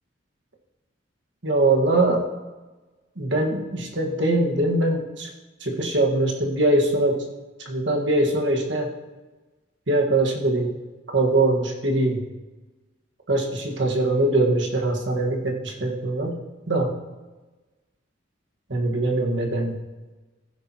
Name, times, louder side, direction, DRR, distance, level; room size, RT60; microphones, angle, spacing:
voice 1, 1.4-2.2 3.2-5.3 5.6-7.2 7.6-8.9 9.9-10.7 11.1-12.2 13.3-16.3 16.7-16.9 18.7-19.8, right 2 dB, 65° right, 0 dB, 1.8 m, -22 dB
15.5 x 9.9 x 3.1 m, 1.2 s
head